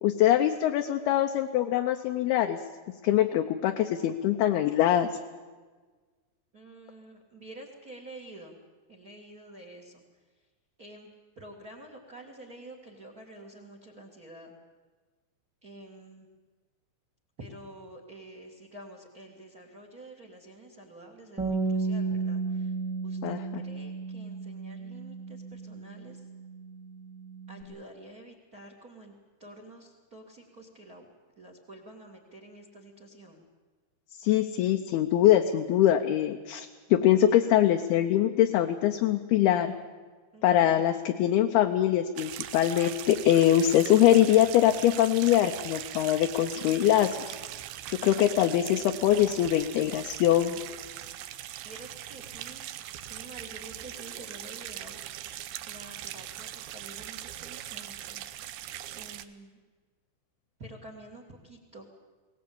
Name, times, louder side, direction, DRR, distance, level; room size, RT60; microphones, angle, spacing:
voice 1, 0.0-2.6 3.0-5.1 23.2-23.6 34.2-39.7 40.4-47.3 47.9-50.6, left 12 dB, 75° left, 4 dB, 2.5 m, -23 dB
voice 2, 6.5-8.6 8.9-10.0 10.8-11.1 11.3-14.5 15.6-16.3 17.4-22.7 23.0-26.2 27.5-29.1 29.4-31.1 31.4-33.4 40.3-40.9 51.6-52.6 53.1-55.0 55.6-58.2 58.9-59.6 60.6-61.8, right 1 dB, 40° right, 3 dB, 1.4 m, -48 dB
Bass guitar, 21.4-27.6, right 4 dB, ahead, 0.9 m, -34 dB
sound 1, 42.2-59.3, right 12 dB, 75° right, 2.3 m, -40 dB
21.5 x 18.5 x 8.6 m, 1.4 s
omnidirectional pair, 5.2 m